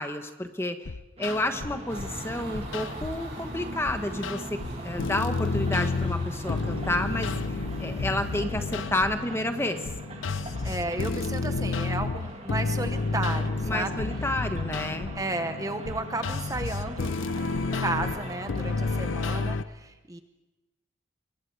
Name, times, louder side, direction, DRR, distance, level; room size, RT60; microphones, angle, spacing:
voice 1, 0.0-4.6 4.8-7.3 7.8-9.8 13.6-15.1, left 1 dB, 15° left, 7 dB, 1.1 m, -30 dB
sound 1, 0.9-2.2 2.5-3.3 3.9-19.6, left 3 dB, 80° left, 0.7 m, -31 dB
sound 2, 1.2-19.5, right 1 dB, 30° right, 1.8 m, -43 dB
sound 3, 1.9-8.4, equal, 55° right, 5.8 m, -39 dB
voice 2, 10.6-13.9 15.1-20.2, right 2 dB, 15° right, 8 dB, 0.9 m, -33 dB
25.5 x 22.0 x 4.8 m, 1.1 s
head